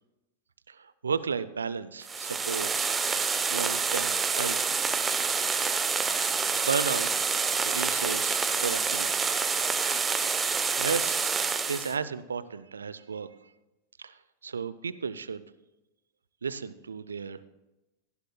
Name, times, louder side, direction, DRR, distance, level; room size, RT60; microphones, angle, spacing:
voice 1, 0.7-4.8 6.7-7.1 7.6-9.3 10.8-11.3 11.7-13.3 14.0-15.4 16.4-17.5, right 5 dB, 70° right, 16 dB, 0.5 m, -34 dB
sound 1, 2.0-11.9, right 5 dB, 15° right, 0.9 m, -27 dB
17.5 x 15.0 x 2.3 m, 0.99 s
figure-of-eight pair, 90°, 0 cm